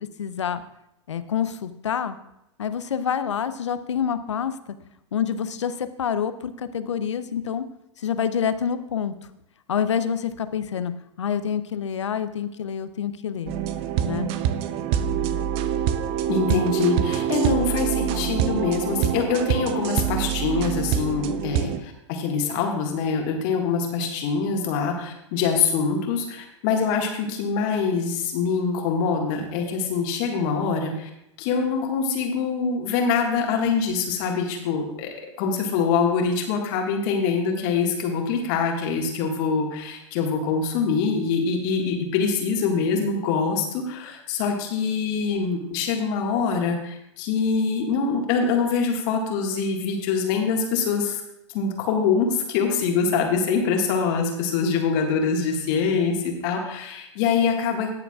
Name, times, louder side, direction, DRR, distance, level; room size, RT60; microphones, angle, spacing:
voice 1, 0.2-0.6 1.1-2.2 2.6-4.6 5.1-7.6 8.0-9.1 9.7-10.9 11.2-13.5 14.0-14.3, left 8 dB, 75° left, 12 dB, 0.7 m, -27 dB
sound 1, 13.5-21.8, right 9 dB, 40° right, 0.6 m, -25 dB
voice 2, 16.3-31.1 31.4-51.2 51.5-57.9, left 5 dB, 45° left, 1 dB, 1.8 m, -24 dB
19.5 x 6.9 x 2.4 m, 0.83 s
hypercardioid pair, 100°, 15 cm